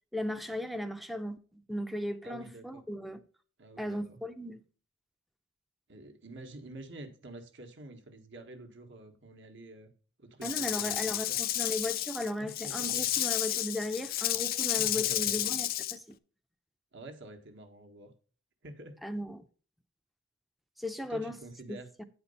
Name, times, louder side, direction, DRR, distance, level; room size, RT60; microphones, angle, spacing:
voice 1, 0.1-3.2 3.8-4.6 10.4-16.2 19.0-19.4 20.8-21.4 21.7-22.0, left 1 dB, ahead, 0.6 m, -36 dB
voice 2, 2.2-2.8 3.6-4.2 5.9-9.9 10.2-11.4 12.4-13.1 14.7-15.5 16.9-18.1 18.6-19.0 21.1-21.9, right 2 dB, 55° right, 1.4 m, -48 dB
Rattle / Rattle (instrument), 10.4-16.0, left 13 dB, 45° left, 0.4 m, -31 dB
9.6 x 4.4 x 5.4 m
head